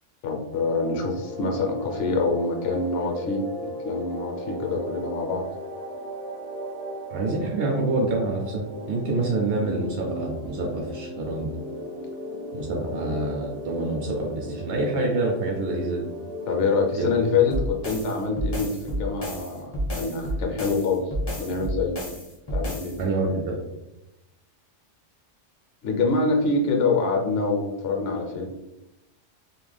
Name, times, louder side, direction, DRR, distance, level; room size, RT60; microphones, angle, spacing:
voice 1, 0.2-5.5 16.5-21.1 21.4-22.0 22.5-23.0 25.8-28.5, left 4 dB, 65° left, 1 dB, 0.7 m, -25 dB
sound 1, 0.5-17.6, equal, 80° right, 1.0 m, -36 dB
voice 2, 7.1-11.5 12.5-16.1 17.0-17.1 23.0-23.6, right 2 dB, 60° right, -1 dB, 0.7 m, -27 dB
sound 2, 17.5-23.0, equal, 35° left, 0.4 m, -30 dB
2.5 x 2.1 x 3.2 m, 0.89 s
omnidirectional pair, 1.2 m